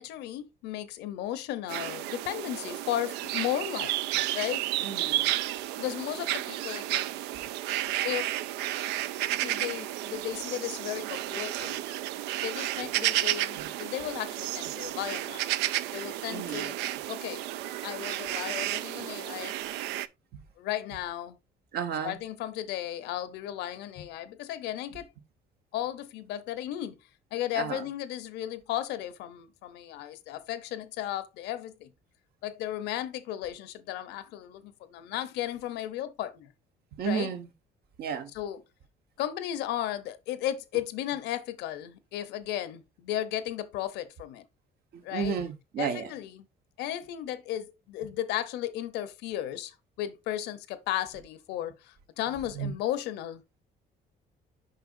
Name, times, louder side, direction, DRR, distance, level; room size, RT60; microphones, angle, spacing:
voice 1, 0.0-4.6 5.8-7.1 8.0-8.3 9.3-11.8 12.4-15.4 15.9-16.8 17.1-17.4 17.8-19.5 20.6-21.4 22.0-25.1 25.7-27.0 27.3-31.9 32.4-36.5 37.0-37.3 38.3-38.6 39.2-44.4 45.0-45.4 45.8-46.5 46.8-53.6, left 12 dB, 85° left, 0.8 m, -35 dB
sound 1, 1.7-20.1, right 14 dB, 90° right, 0.4 m, -32 dB
voice 2, 4.8-5.3 16.3-16.7 20.3-20.4 21.7-22.2 27.5-27.8 36.9-37.5 38.0-38.3 44.9-46.1 52.5-52.7, right 6 dB, 70° right, 1.2 m, -32 dB
6.6 x 5.5 x 2.6 m
cardioid pair, 110°, 17 cm